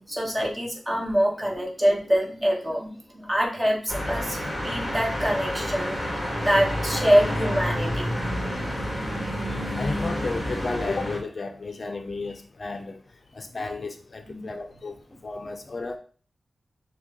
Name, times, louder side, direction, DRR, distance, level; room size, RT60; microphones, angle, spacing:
voice 1, 0.1-6.0 6.4-8.0 9.1-9.6 14.3-14.5, equal, 15° right, -2 dB, 1.3 m, -25 dB
sound 1, 3.9-11.2, equal, 10° left, 1.7 m, -29 dB
voice 2, 9.8-13.0 13.3-16.0, left 3 dB, 50° left, 6 dB, 0.4 m, -33 dB
6.3 x 2.2 x 3.6 m, 0.42 s
wide cardioid pair, 90°, 0 cm